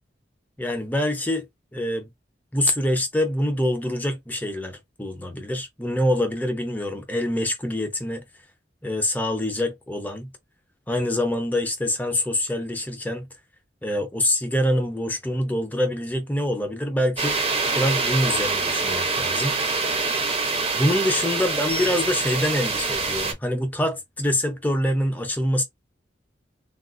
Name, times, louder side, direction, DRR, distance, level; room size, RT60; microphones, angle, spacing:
voice 1, 0.6-1.4 1.7-2.1 2.5-8.2 8.8-10.3 10.9-13.3 13.8-17.4 17.7-19.5 20.8-25.6, left 1 dB, 10° left, 0.6 m, -25 dB
sound 1, 17.2-23.3, right 3 dB, 30° right, 0.7 m, -25 dB
3.4 x 2.4 x 2.4 m
head